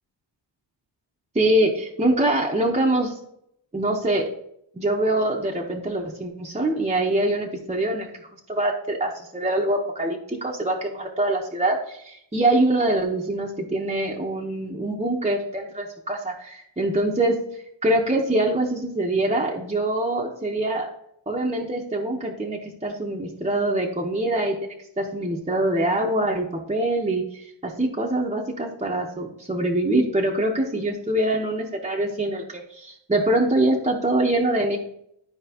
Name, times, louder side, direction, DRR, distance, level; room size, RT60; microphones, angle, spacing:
voice 1, 1.3-3.1 3.7-4.3 4.7-8.1 8.5-17.4 17.8-20.9 21.3-34.8, right 1 dB, 15° right, -1 dB, 1.3 m, -24 dB
12.5 x 4.5 x 3.0 m, 0.72 s
cardioid pair, 90°, 46 cm